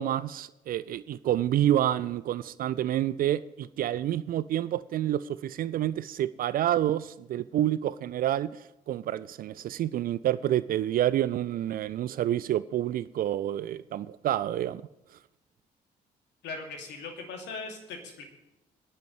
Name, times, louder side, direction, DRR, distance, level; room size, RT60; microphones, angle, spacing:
voice 1, 0.0-14.8, right 12 dB, 45° right, 0.4 m, -28 dB
voice 2, 16.4-18.2, left 4 dB, 60° left, 2.6 m, -39 dB
26.0 x 10.5 x 3.2 m
figure-of-eight pair, 45°, 21 cm